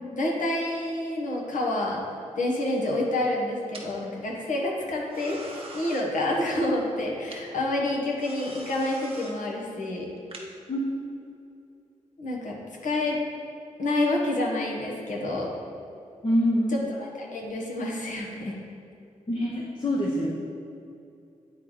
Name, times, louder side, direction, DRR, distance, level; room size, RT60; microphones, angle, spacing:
voice 1, 0.1-2.0 2.4-10.1 12.2-12.6 12.8-13.2 13.8-15.5 16.7-18.5, left 1 dB, 70° left, -2 dB, 1.1 m, -28 dB
sound 1, 2.6-3.0 3.7-3.9 5.1-6.1 7.3-7.4 8.1-9.4 10.2-10.4, right 3 dB, 45° right, 0.9 m, -43 dB
voice 2, 16.2-16.9 19.3-20.3, equal, 35° left, -4 dB, 0.8 m, -25 dB
9.2 x 3.7 x 3.2 m, 2.6 s
cardioid pair, 75°, 13 cm